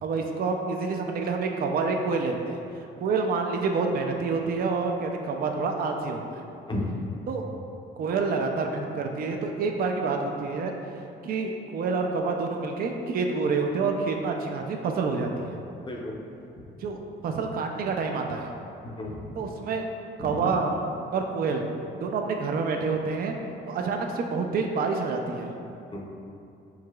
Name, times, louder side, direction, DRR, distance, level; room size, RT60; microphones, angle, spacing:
voice 1, 0.0-2.6 3.0-6.4 7.3-7.5 8.0-10.7 11.2-15.5 16.8-18.5 19.4-19.8 20.2-20.8 21.1-21.6 22.0-23.4 23.7-25.6, right 4 dB, 50° right, 3 dB, 0.4 m, -28 dB
voice 2, 15.8-16.2 16.6-16.7 18.8-19.4 20.2-20.5 25.9-26.1, left 1 dB, 25° left, -1 dB, 0.6 m, -34 dB
4.7 x 3.7 x 2.3 m, 2.6 s
cardioid pair, 90°, 20 cm